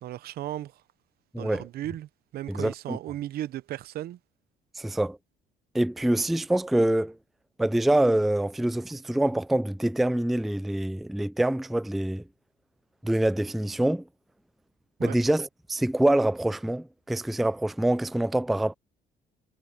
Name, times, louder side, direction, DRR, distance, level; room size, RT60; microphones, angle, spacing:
voice 1, 0.0-0.8 1.4-4.2 15.0-15.2, right 13 dB, 65° right, 0.7 m, -36 dB
voice 2, 1.3-1.7 2.5-3.0 4.8-5.2 5.7-7.2 7.6-12.2 13.0-14.0 15.0-18.7, right 1 dB, ahead, 0.3 m, -25 dB
cardioid pair, 110°, 17 cm